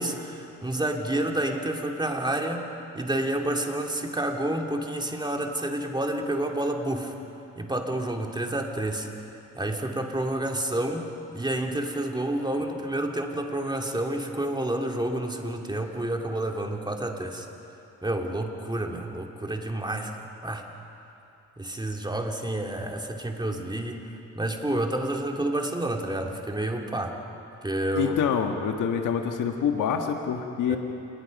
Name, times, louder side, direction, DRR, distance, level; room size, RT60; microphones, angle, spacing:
voice 1, 0.0-2.7 2.9-7.2 7.6-9.1 9.5-17.5 18.0-20.1 20.4-20.6 21.6-27.2 27.6-28.3 30.7-30.8, right 1 dB, 15° right, 2 dB, 2.7 m, -29 dB
voice 2, 27.9-30.8, left 7 dB, 75° left, 4 dB, 1.6 m, -26 dB
27.0 x 20.0 x 5.4 m, 2.8 s
cardioid pair, 80°, 31 cm